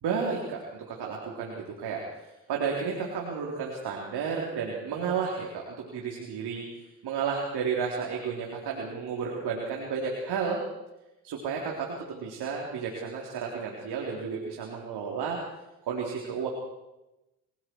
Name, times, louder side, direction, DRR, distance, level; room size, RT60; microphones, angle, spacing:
voice 1, 0.0-10.6 11.2-15.4 15.9-16.5, right 6 dB, 65° right, -1 dB, 4.1 m, -32 dB
29.0 x 19.5 x 4.8 m, 0.97 s
hypercardioid pair, 55°, 43 cm